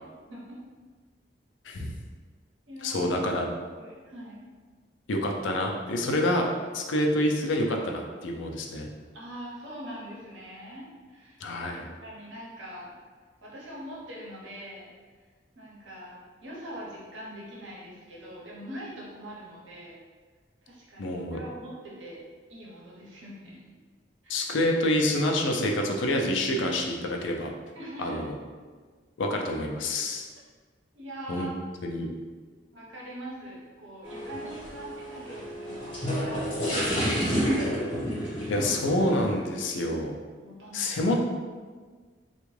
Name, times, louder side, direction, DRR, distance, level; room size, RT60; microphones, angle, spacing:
voice 1, 0.3-0.6 2.7-3.1 3.8-4.5 9.1-11.4 12.0-12.9 13.4-14.9 15.5-20.0 20.6-22.2 22.5-23.6 24.2-24.4 27.7-28.2 30.9-31.5 32.7-38.3 40.4-41.0, equal, 90° right, -5 dB, 0.9 m, -43 dB
voice 2, 1.6-2.0 2.8-3.5 5.1-6.5 6.7-8.9 11.4-11.9 21.0-21.4 24.3-27.5 28.0-28.3 29.2-30.3 31.3-31.5 31.8-32.1 38.5-40.2 40.7-41.2, left 1 dB, 85° left, 1 dB, 0.5 m, -27 dB
sound 1, 34.0-39.4, equal, 30° left, 1.2 m, -30 dB
3.4 x 2.3 x 3.2 m, 1.5 s
head